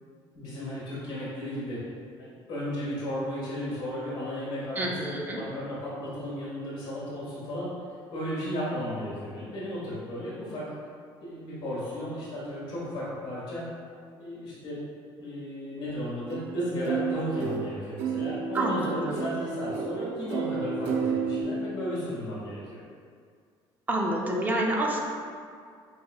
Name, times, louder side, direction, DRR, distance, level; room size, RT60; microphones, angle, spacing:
voice 1, 0.3-1.8 2.2-7.7 8.1-10.7 11.2-13.7 14.2-14.8 15.2-22.8, equal, 55° left, -8 dB, 1.4 m, -34 dB
voice 2, 4.8-5.4 18.5-19.2 23.9-25.0, right 1 dB, 20° right, -1 dB, 0.5 m, -28 dB
sound 1, 16.3-21.4, right 6 dB, 85° right, 0.4 m, -31 dB
5.5 x 2.7 x 2.3 m, 2.2 s
cardioid pair, 150°, 10 cm